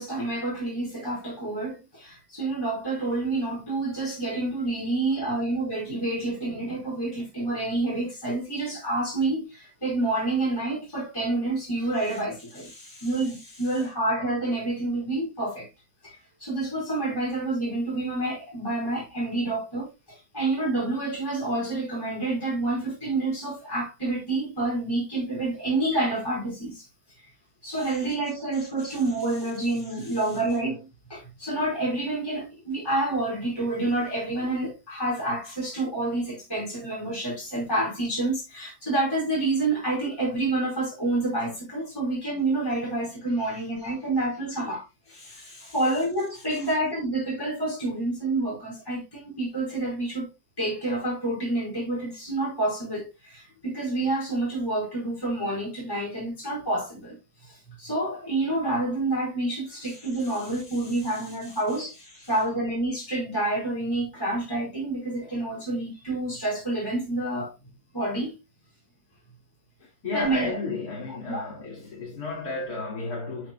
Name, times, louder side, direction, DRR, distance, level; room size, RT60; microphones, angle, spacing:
voice 1, 0.0-12.7 13.0-15.7 16.0-26.8 27.2-27.3 27.6-44.9 45.3-45.4 45.7-50.3 50.6-57.2 57.4-61.9 62.3-67.5 67.9-68.3 70.1-70.5 71.1-71.5, right 2 dB, 10° left, 4.7 m, -28 dB
voice 2, 12.5-13.9 27.7-28.0 28.5-30.4 31.4-31.5 43.3-43.9 44.7-44.8 45.1-45.9 46.3-46.7 59.8-62.4 65.2-65.4 69.8-73.5, left 3 dB, 45° left, 2.9 m, -38 dB
12.5 x 6.5 x 2.3 m
omnidirectional pair, 2.3 m